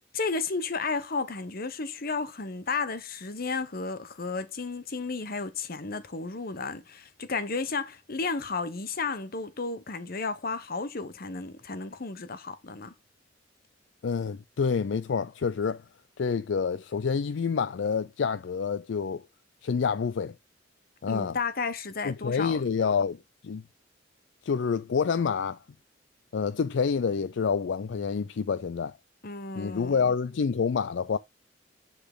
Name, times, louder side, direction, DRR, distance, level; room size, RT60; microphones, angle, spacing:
voice 1, 0.1-12.9 21.1-22.6 29.2-30.0, left 4 dB, 50° left, 1.0 m, -33 dB
voice 2, 14.0-15.8 16.2-19.2 19.6-20.4 21.0-21.4 22.0-23.6 24.4-25.6 26.3-28.9 29.6-31.2, left 6 dB, 70° left, 0.4 m, -28 dB
10.0 x 3.8 x 3.8 m
head